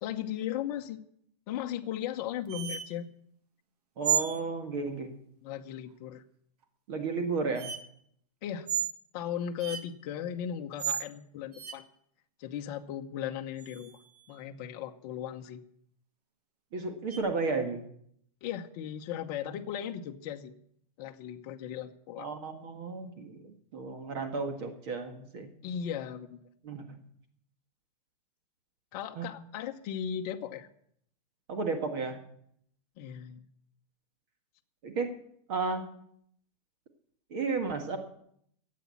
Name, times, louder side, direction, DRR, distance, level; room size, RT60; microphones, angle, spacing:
voice 1, 0.0-1.0 1.5-3.1 5.4-6.2 8.4-8.7 9.1-11.9 12.4-14.0 14.3-15.6 18.4-20.5 21.0-22.3 25.6-26.5 28.9-30.7 33.0-33.5, left 9 dB, 30° left, 3 dB, 0.9 m, -37 dB
sound 1, 2.5-2.9 4.0-4.4 6.6-6.7 7.6-7.8 8.7-9.0 9.6-9.8 10.8-11.1 11.5-11.7 13.6-14.2 17.1-17.2, right 8 dB, 75° right, 1.7 m, -32 dB
voice 2, 4.0-5.1 6.9-7.7 16.7-17.8 22.2-23.4 23.7-25.5 26.6-27.0 29.2-29.3 31.5-32.2 34.8-35.1 35.5-35.8 37.3-38.0, right 4 dB, 40° right, 5 dB, 1.7 m, -33 dB
14.0 x 8.5 x 8.4 m, 0.68 s
supercardioid pair, 170°, 20 cm